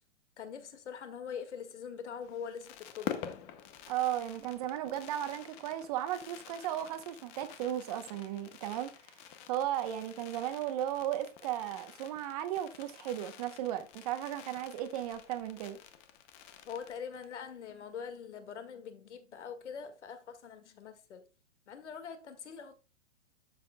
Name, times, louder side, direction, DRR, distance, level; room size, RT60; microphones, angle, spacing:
voice 1, 0.4-3.5 16.7-21.2 21.7-22.7, left 7 dB, 70° left, 1.9 m, -43 dB
Fireworks, 2.2-17.4 17.7-17.8 18.0-18.3, left 10 dB, 20° left, 0.6 m, -48 dB
voice 2, 3.9-8.9 9.5-15.8, right 12 dB, 30° right, 0.9 m, -35 dB
12.5 x 6.0 x 2.2 m
hypercardioid pair, 155°, 36 cm